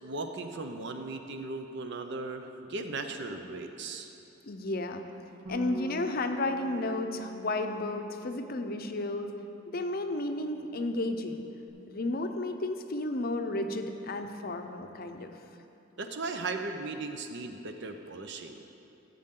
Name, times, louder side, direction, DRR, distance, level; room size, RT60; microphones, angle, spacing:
voice 1, 0.0-4.1 16.0-18.6, right 3 dB, 60° right, 6 dB, 0.7 m, -37 dB
voice 2, 4.4-5.0 5.5-9.3 9.7-11.4 11.9-15.3, left 2 dB, 45° left, 6 dB, 0.6 m, -32 dB
Bass guitar, 5.5-11.7, right 2 dB, 85° right, 2.1 m, -47 dB
15.0 x 7.6 x 3.8 m, 2.8 s
head